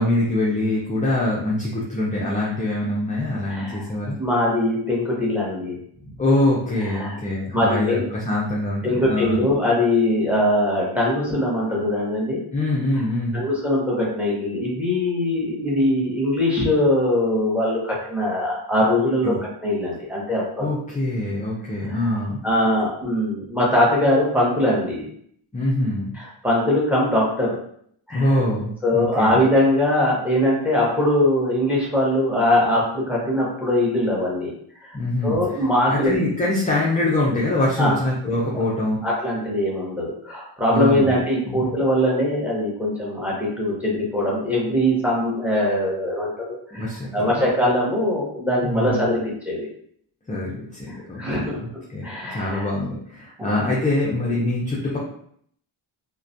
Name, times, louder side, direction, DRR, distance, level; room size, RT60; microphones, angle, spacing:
voice 1, 0.0-4.2 6.2-9.4 12.5-13.4 19.2-19.4 20.6-22.4 25.5-26.1 28.1-29.4 34.9-35.4 35.9-39.0 40.7-41.1 41.4-41.7 46.7-47.4 48.6-49.1 50.3-55.0, left 1 dB, 15° left, -4 dB, 0.4 m, -24 dB
voice 2, 3.5-3.9 4.2-5.8 6.9-7.1 7.5-8.0 8.8-12.4 13.3-19.3 19.6-20.7 22.4-25.0 26.1-27.5 28.1-28.3 28.8-34.5 34.8-35.0 35.2-36.2 37.8-37.9 38.5-38.6 39.0-49.7 51.1-52.7 53.4-53.6, left 1 dB, 5° right, -4 dB, 0.8 m, -21 dB
2.3 x 2.1 x 2.6 m, 0.64 s
wide cardioid pair, 110°, 49 cm